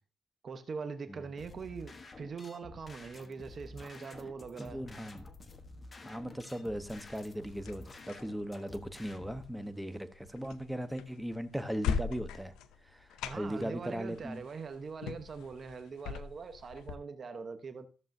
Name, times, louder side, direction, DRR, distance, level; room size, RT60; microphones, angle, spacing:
voice 1, 0.4-4.8 13.2-17.9, right 5 dB, 45° right, 1.0 m, -42 dB
sound 1, 1.4-9.4, left 2 dB, 30° left, 1.1 m, -51 dB
voice 2, 4.6-5.3 6.0-12.5 12.8-14.4, equal, 5° right, 0.9 m, -38 dB
sound 2, 7.0-17.0, left 7 dB, 90° left, 0.5 m, -42 dB
14.0 x 7.1 x 2.7 m
cardioid pair, 90°, 0 cm